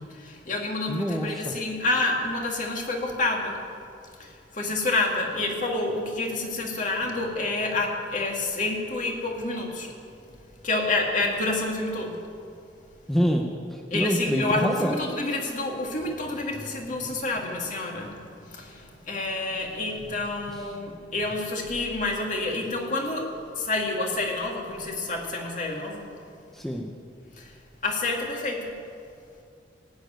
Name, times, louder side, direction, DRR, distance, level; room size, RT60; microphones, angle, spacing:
voice 1, 0.2-3.6 4.2-9.9 10.2-10.3 10.6-12.2 13.9-26.1 27.3-27.6 27.8-28.8, left 2 dB, 45° left, 0 dB, 2.2 m, -28 dB
voice 2, 0.9-1.5 13.1-15.0 26.5-26.9, equal, ahead, 1 dB, 0.7 m, -26 dB
17.5 x 7.1 x 9.3 m, 2.4 s
head